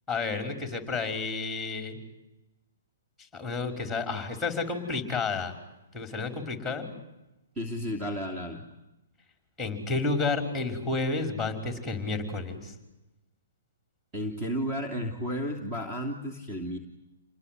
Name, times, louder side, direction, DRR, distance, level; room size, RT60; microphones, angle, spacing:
voice 1, 0.1-2.0 3.3-5.5 5.9-6.9 9.6-12.7, left 3 dB, ahead, 6 dB, 5.4 m, -31 dB
voice 2, 7.6-8.6 14.1-16.8, equal, 20° right, 4 dB, 3.1 m, -32 dB
29.0 x 19.5 x 9.5 m, 0.95 s
hypercardioid pair, 140°, 0 cm